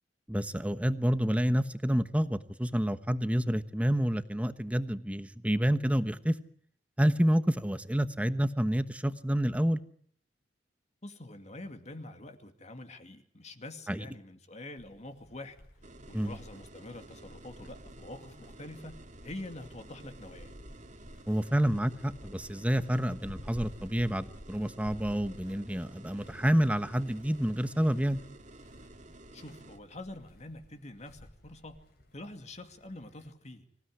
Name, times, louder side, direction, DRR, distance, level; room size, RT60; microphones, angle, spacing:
voice 1, 0.3-6.3 7.0-9.8 13.9-14.1 16.1-16.4 21.3-28.2, equal, 10° right, 11 dB, 1.1 m, -28 dB
voice 2, 11.0-15.6 16.1-19.0 19.2-20.5 29.3-31.8 32.1-33.6, left 2 dB, 40° left, 7 dB, 2.4 m, -46 dB
sound 1, 14.8-33.3, equal, 60° left, 5.3 m, -53 dB
sound 2, 15.8-29.8, right 2 dB, 45° right, 2.2 m, -52 dB
25.5 x 16.0 x 9.9 m, 0.64 s
head